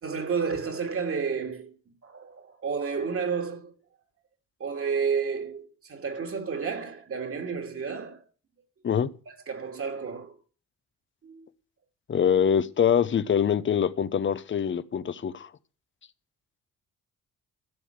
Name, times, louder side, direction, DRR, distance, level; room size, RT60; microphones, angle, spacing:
voice 1, 0.0-1.7 2.0-3.7 4.6-8.2 9.3-10.3 11.2-11.5, right 5 dB, 50° right, 2.7 m, -31 dB
voice 2, 12.1-15.5, left 8 dB, 40° left, 1.0 m, -24 dB
14.0 x 6.3 x 8.0 m
cardioid pair, 90°, 30 cm